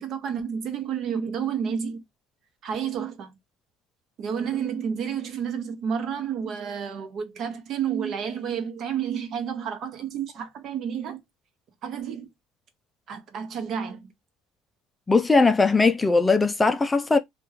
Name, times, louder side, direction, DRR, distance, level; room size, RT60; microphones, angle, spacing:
voice 1, 0.0-2.0 2.6-3.3 4.2-11.2 11.8-12.3 13.1-14.1, right 7 dB, 50° right, 1.0 m, -30 dB
voice 2, 15.1-17.2, left 3 dB, 15° left, 0.4 m, -19 dB
2.9 x 2.4 x 3.5 m
cardioid pair, 115°, 0 cm